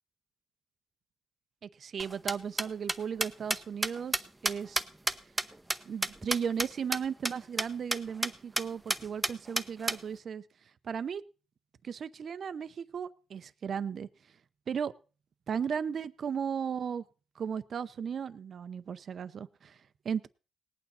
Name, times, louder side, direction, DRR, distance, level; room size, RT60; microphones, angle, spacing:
voice 1, 1.6-4.8 5.9-10.4 10.8-11.2 11.8-14.1 14.7-14.9 15.5-17.0 17.4-19.8 20.0-20.3, right 7 dB, 50° right, 14 dB, 0.6 m, -35 dB
sound 1, 2.0-6.7 6.9-7.0 7.2-7.3 7.6-7.7 7.9-8.3 8.6-8.7 8.9-10.0, right 1 dB, 10° right, 0.8 m, -30 dB
19.0 x 8.8 x 4.2 m, 0.36 s
cardioid pair, 90°, 0 cm